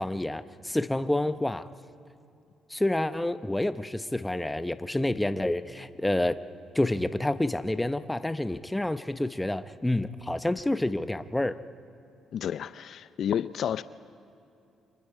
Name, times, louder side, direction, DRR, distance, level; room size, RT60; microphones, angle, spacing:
voice 1, 0.0-1.7 2.7-6.4 6.7-11.6, left 1 dB, 10° left, 0.8 m, -28 dB
voice 2, 12.3-13.8, left 9 dB, 65° left, 0.4 m, -30 dB
29.5 x 26.0 x 4.9 m
cardioid pair, 90°, 0 cm